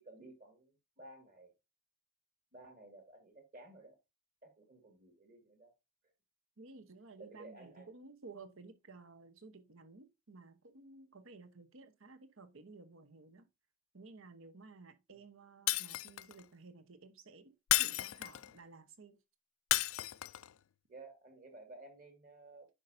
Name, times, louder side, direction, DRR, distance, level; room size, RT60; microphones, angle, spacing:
voice 1, 0.0-1.5 2.5-4.0 4.4-5.7 7.2-7.9 15.1-15.2 20.9-22.7, right 2 dB, 40° right, 2.1 m, -55 dB
voice 2, 6.6-13.5 13.9-19.2, right 3 dB, 60° right, 1.0 m, -55 dB
Shatter, 15.7-16.4 17.7-18.5 19.7-20.5, left 16 dB, 65° left, 0.3 m, -32 dB
9.9 x 5.4 x 2.7 m
head